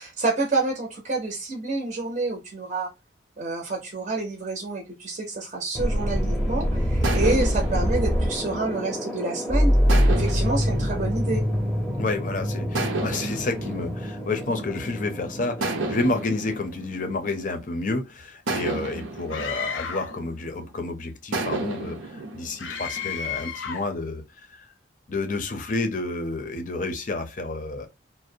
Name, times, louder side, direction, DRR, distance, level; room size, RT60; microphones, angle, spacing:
voice 1, 0.0-2.9 3.4-9.7 10.2-11.4, right 2 dB, 40° right, 0.6 m, -28 dB
sound 1, 5.7-16.2, equal, ahead, 0.7 m, -25 dB
sound 2, 5.8-6.4 7.0-9.3 9.9-12.1 12.7-15.0 15.6-17.9 18.5-20.7 21.3-23.6, right 2 dB, 80° right, 0.6 m, -33 dB
voice 2, 12.0-24.7 25.1-27.9, left 2 dB, 40° left, 0.5 m, -30 dB
Screaming, 19.3-20.2 22.6-24.0, left 7 dB, 90° left, 0.6 m, -32 dB
2.4 x 2.0 x 2.6 m
head